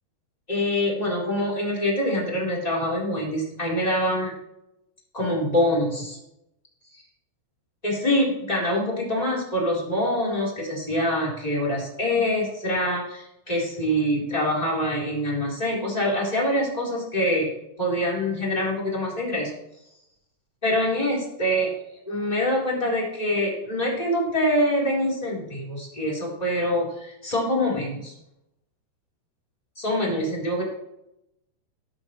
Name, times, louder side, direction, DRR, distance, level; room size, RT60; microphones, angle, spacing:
voice 1, 0.5-4.3 5.1-6.2 6.9-7.0 7.8-17.5 17.8-19.5 20.6-21.7 22.1-28.1 29.8-30.6, left 1 dB, 10° left, -5 dB, 3.5 m, -25 dB
19.5 x 8.9 x 3.2 m, 0.86 s
omnidirectional pair, 4.8 m